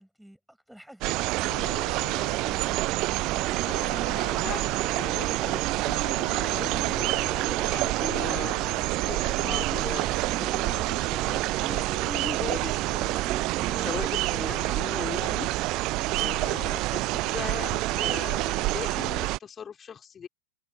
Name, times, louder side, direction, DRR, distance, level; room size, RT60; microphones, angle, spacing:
voice 1, 0.0-2.7, equal, ahead, 7.2 m, -52 dB
sound 1, 1.0-19.4, right 20 dB, 40° right, 0.6 m, -27 dB
sound 2, 1.5-10.2, left 18 dB, 50° left, 2.9 m, -45 dB
sound 3, 2.1-14.6, right 8 dB, 25° right, 2.4 m, -41 dB
voice 2, 4.9-15.5 16.1-20.3, left 7 dB, 20° left, 4.5 m, -39 dB
figure-of-eight pair, 90°, 0 cm